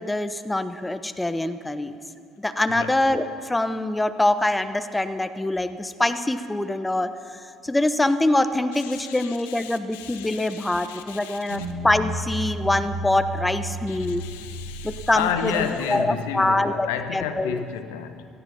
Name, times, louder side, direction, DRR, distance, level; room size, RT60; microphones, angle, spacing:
voice 1, 0.0-1.9 2.4-14.2 14.8-17.6, left 1 dB, 10° left, 0.8 m, -24 dB
voice 2, 2.7-3.0 8.7-11.6 13.9-18.3, left 8 dB, 70° left, 0.8 m, -32 dB
sound 1, 11.5-15.8, right 1 dB, 85° right, 1.4 m, -33 dB
17.5 x 13.5 x 5.7 m
figure-of-eight pair, 50°, 0 cm